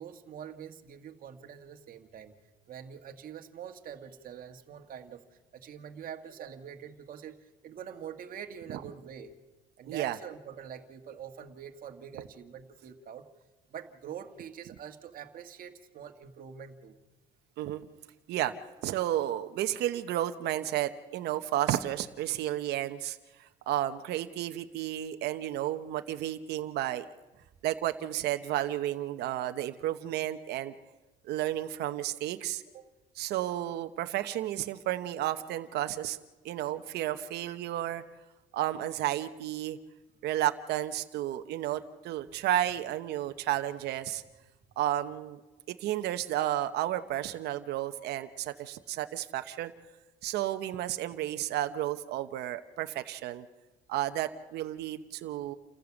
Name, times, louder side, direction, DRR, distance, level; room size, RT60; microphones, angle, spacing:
voice 1, 0.0-2.3 2.7-5.2 5.5-9.3 9.8-13.3 13.7-17.0 32.7-32.9, right 8 dB, 55° right, 4 dB, 1.7 m, -45 dB
voice 2, 9.9-10.2 17.6-17.8 18.3-18.5 18.8-27.1 27.6-30.7 31.3-32.6 33.2-36.2 36.4-38.0 38.5-39.8 40.2-44.2 44.8-45.4 45.7-49.7 50.2-53.5 53.9-55.5, right 13 dB, 75° right, 8 dB, 1.0 m, -32 dB
28.5 x 14.5 x 7.2 m, 1.2 s
cardioid pair, 110°, 17 cm